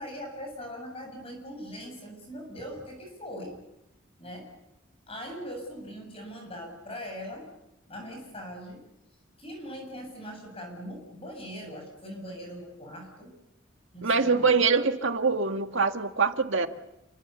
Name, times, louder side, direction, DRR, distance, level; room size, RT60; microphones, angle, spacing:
voice 1, 0.0-3.6 4.2-4.5 5.1-7.5 7.9-8.9 9.4-13.3 13.9-14.6, equal, 30° left, 3 dB, 7.5 m, -41 dB
voice 2, 14.0-16.7, right 4 dB, 65° right, 6 dB, 1.9 m, -24 dB
29.5 x 25.5 x 7.1 m, 0.88 s
head